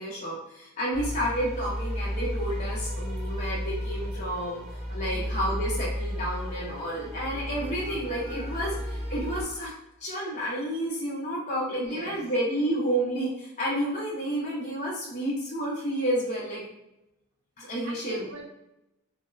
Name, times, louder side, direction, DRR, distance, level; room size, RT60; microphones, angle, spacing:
voice 1, 0.0-4.6 4.9-9.7 10.0-16.6 17.6-18.3, right 1 dB, 35° left, -6 dB, 0.5 m, -30 dB
sound 1, 0.9-9.4, equal, 30° right, 0.5 m, -33 dB
voice 2, 4.9-5.4 11.8-12.3 17.8-18.4, right 2 dB, 75° right, 0 dB, 0.6 m, -43 dB
2.9 x 2.0 x 2.3 m, 0.89 s
head